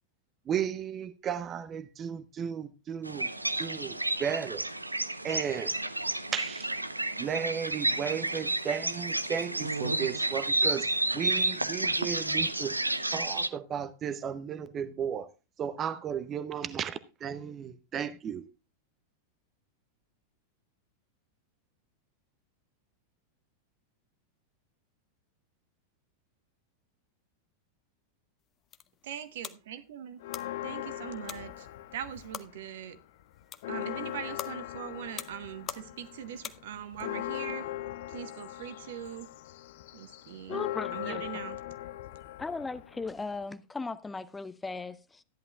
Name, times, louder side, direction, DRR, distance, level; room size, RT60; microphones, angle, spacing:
voice 1, 0.5-3.3 3.6-4.7 5.2-5.7 6.3-6.7 7.2-12.8 13.1-15.3 15.6-18.5, right 8 dB, 25° right, 0.8 m, -34 dB
sound 1, 3.1-13.5, right 2 dB, 85° right, 0.7 m, -31 dB
sound 2, 28.4-37.0, left 9 dB, 25° left, 0.9 m, -46 dB
voice 2, 29.0-30.2 30.6-31.7 31.9-33.0 33.7-37.7 38.1-39.3 39.9-40.6 40.9-41.6, right 9 dB, 55° right, 1.3 m, -41 dB
Church bell, 30.2-32.6 32.9-33.0 33.4-43.4, left 14 dB, 55° left, 0.6 m, -40 dB
voice 3, 40.5-41.2 42.4-45.2, left 3 dB, 10° left, 0.5 m, -37 dB
14.0 x 11.0 x 2.4 m
figure-of-eight pair, 90°, 0 cm